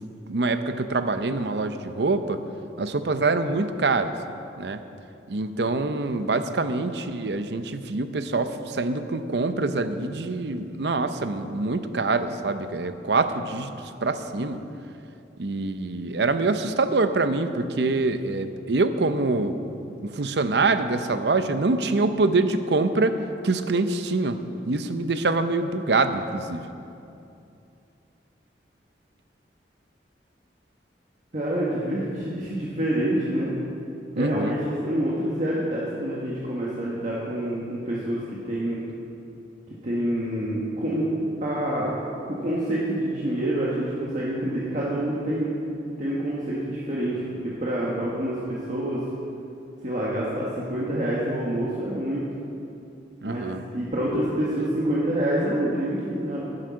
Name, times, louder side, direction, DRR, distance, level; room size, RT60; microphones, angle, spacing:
voice 1, 0.0-2.4 2.8-4.1 4.6-4.8 5.3-14.6 15.4-19.6 19.9-23.2 23.4-26.7 34.1-34.6 53.2-53.6, right 3 dB, 70° right, 10 dB, 0.7 m, -25 dB
voice 2, 31.3-33.5 34.2-38.8 39.8-41.1 41.4-41.9 42.3-45.5 46.0-49.0 49.8-52.2 53.3-53.4 53.7-56.4, right 1 dB, 45° right, -6 dB, 1.5 m, -27 dB
11.5 x 9.8 x 6.3 m, 2.7 s
head